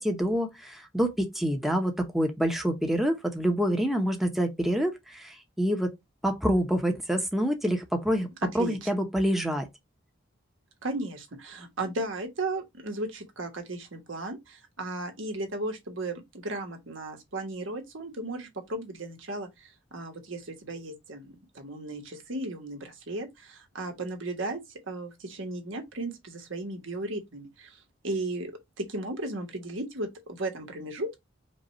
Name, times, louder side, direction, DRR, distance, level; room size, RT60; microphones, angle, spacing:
voice 1, 0.0-5.9 6.2-8.3 8.5-9.7, equal, ahead, 0.7 m, -27 dB
voice 2, 8.6-8.9 10.8-24.6 24.9-27.8 28.0-28.5 28.8-31.2, right 2 dB, 85° right, 1.3 m, -35 dB
5.2 x 2.3 x 4.1 m
head